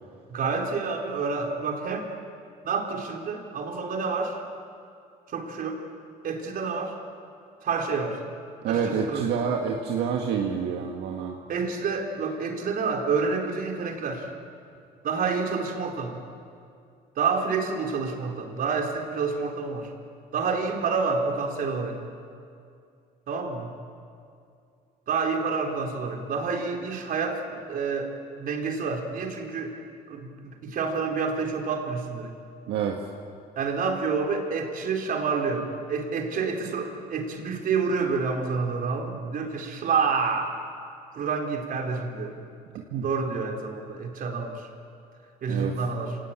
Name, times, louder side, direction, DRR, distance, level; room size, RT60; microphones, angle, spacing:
voice 1, 0.3-2.1 2.6-4.4 5.3-5.8 6.2-6.9 7.6-8.2 8.6-9.3 11.5-14.3 15.0-16.2 17.2-19.9 20.3-22.0 23.3-23.7 25.1-28.1 28.4-29.8 30.1-32.3 33.6-40.5 41.1-42.4 43.0-44.7 45.4-46.2, right 5 dB, 55° right, 2 dB, 4.2 m, -28 dB
voice 2, 8.6-11.4 32.7-33.1 42.9-43.0 45.5-45.8, right 7 dB, 80° right, 1 dB, 1.9 m, -27 dB
27.5 x 18.5 x 9.0 m, 2.4 s
cardioid pair, 110°, 17 cm